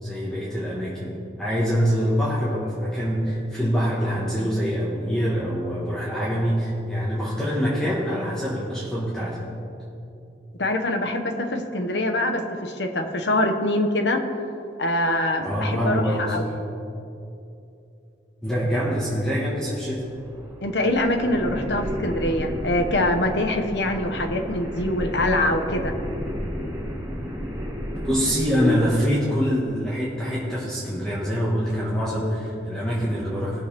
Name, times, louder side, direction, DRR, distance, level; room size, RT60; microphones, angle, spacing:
voice 1, 0.0-9.5 15.4-16.3 18.4-20.0 28.0-33.6, equal, 5° left, -7 dB, 1.5 m, -25 dB
voice 2, 10.6-14.2 14.8-16.5 20.6-25.9, left 1 dB, 70° left, 4 dB, 1.0 m, -24 dB
sound 1, 19.9-29.4, equal, 15° right, 2.0 m, -32 dB
19.0 x 6.7 x 3.4 m, 2.7 s
head